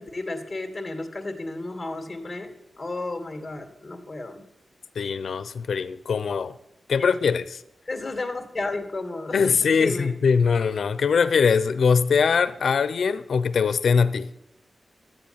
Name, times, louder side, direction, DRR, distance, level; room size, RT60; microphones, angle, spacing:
voice 1, 0.0-4.4 7.0-7.1 7.9-10.2, left 2 dB, 25° left, 2.5 m, -33 dB
voice 2, 5.0-6.5 6.9-7.6 9.3-14.3, left 6 dB, 75° left, 0.8 m, -22 dB
13.0 x 8.9 x 9.0 m
wide cardioid pair, 100°, 0 cm